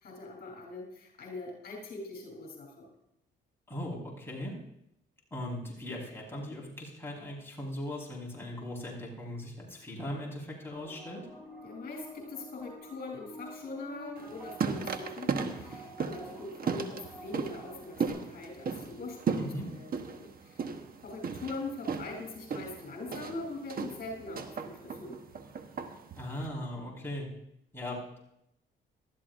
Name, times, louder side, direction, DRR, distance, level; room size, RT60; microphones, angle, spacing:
voice 1, 0.0-2.9 11.6-20.6 21.0-25.2, left 3 dB, 50° left, -1 dB, 3.7 m, -42 dB
voice 2, 3.7-4.5 5.3-11.2 19.4-19.7 26.1-27.3 27.7-28.2, left 1 dB, 10° left, -4 dB, 4.8 m, -39 dB
sound 1, 10.7-18.1, equal, 5° right, 6.0 m, -49 dB
sound 2, 14.2-26.5, right 5 dB, 50° right, 1.2 m, -36 dB
19.0 x 13.0 x 2.6 m, 0.79 s
cardioid pair, 90°, 20 cm